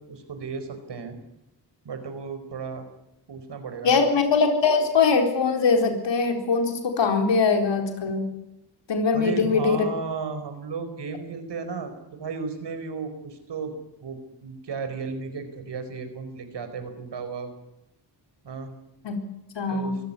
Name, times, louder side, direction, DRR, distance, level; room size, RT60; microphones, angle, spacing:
voice 1, 0.1-1.2 1.8-2.8 3.3-4.2 9.1-11.9 12.2-13.7 14.0-17.5 18.4-18.7 19.7-20.0, right 5 dB, 75° right, 8 dB, 4.7 m, -34 dB
voice 2, 3.8-8.3 8.9-9.8 19.0-19.2 19.5-20.0, left 4 dB, 85° left, 5 dB, 4.4 m, -22 dB
24.0 x 15.5 x 9.9 m, 0.90 s
cardioid pair, 90°, 42 cm